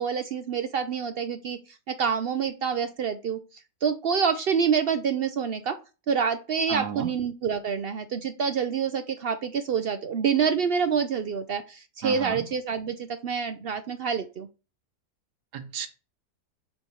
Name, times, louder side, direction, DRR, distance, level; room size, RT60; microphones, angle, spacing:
voice 1, 0.0-1.6 1.9-3.4 3.8-5.8 6.1-14.5, right 6 dB, 75° right, 0.5 m, -27 dB
voice 2, 6.7-7.1 12.0-12.4 15.5-15.9, right 8 dB, 90° right, 1.4 m, -33 dB
7.3 x 3.3 x 5.6 m
omnidirectional pair, 1.7 m